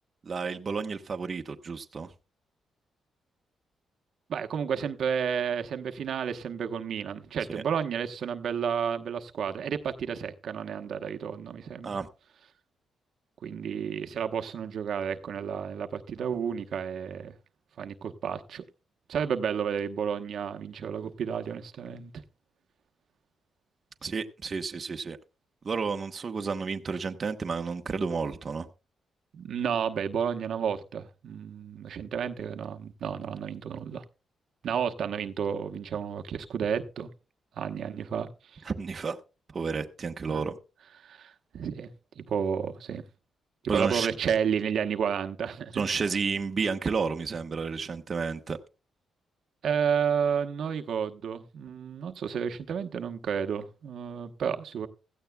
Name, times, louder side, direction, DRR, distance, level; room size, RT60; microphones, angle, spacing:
voice 1, 0.2-2.1 7.5-7.6 11.8-12.1 24.0-25.2 25.6-28.7 38.6-39.2 39.5-40.6 43.7-44.1 45.7-48.6, right 5 dB, 35° right, 1.0 m, -31 dB
voice 2, 4.3-12.0 13.4-17.3 17.8-18.6 19.1-22.1 29.3-34.0 34.6-37.1 37.6-38.6 40.3-40.4 41.0-41.9 42.2-43.0 43.7-45.9 49.6-54.9, right 7 dB, 65° right, 1.0 m, -31 dB
16.5 x 14.5 x 2.2 m
cardioid pair, 125°, 0 cm